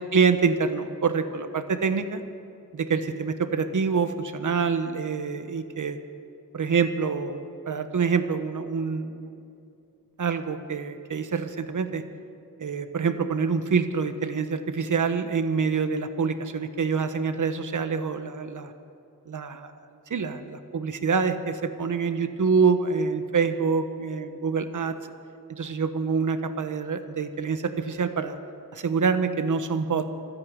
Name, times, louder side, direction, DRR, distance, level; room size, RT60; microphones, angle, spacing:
voice 1, 0.1-2.2 2.7-6.0 6.5-9.4 10.2-12.0 12.6-18.7 19.3-24.9 25.5-28.4 28.7-30.1, right 5 dB, 60° right, 9 dB, 1.3 m, -26 dB
27.0 x 9.5 x 5.4 m, 2.6 s
cardioid pair, 65°, 34 cm